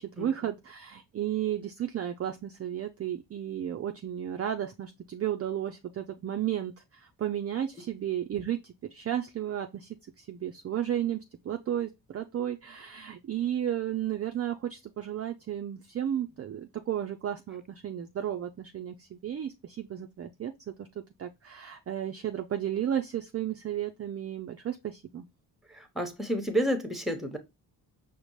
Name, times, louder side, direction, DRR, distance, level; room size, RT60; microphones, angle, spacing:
voice 1, 0.0-20.5 20.8-20.9 21.2-25.3, right 10 dB, 35° right, 0.4 m, -33 dB
voice 2, 25.7-27.4, equal, ahead, 0.9 m, -30 dB
5.0 x 2.1 x 3.0 m
supercardioid pair, 55°, 44 cm